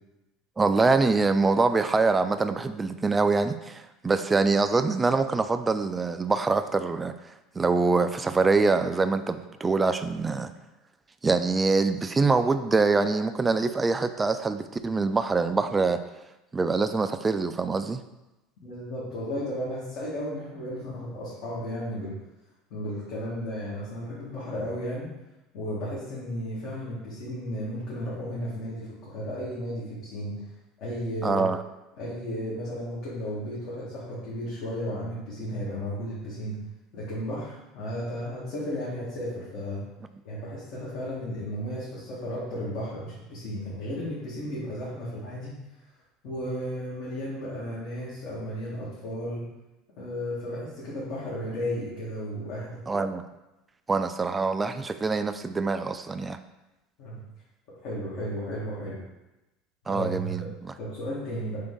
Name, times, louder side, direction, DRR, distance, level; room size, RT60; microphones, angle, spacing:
voice 1, 0.6-7.1 7.6-10.5 11.2-16.0 16.5-18.0 31.2-31.6 52.9-53.2 53.9-56.4 59.9-60.7, right 4 dB, 20° right, 10 dB, 0.3 m, -24 dB
voice 2, 18.6-22.1 22.7-25.1 25.5-30.3 30.8-31.5 32.0-36.6 36.9-39.8 40.2-45.5 46.2-49.4 50.0-52.8 57.0-57.2 57.8-59.0 59.9-60.5 60.8-61.6, equal, 60° left, -9 dB, 1.5 m, -34 dB
3.7 x 3.3 x 3.8 m, 1.0 s
supercardioid pair, 100°, 0 cm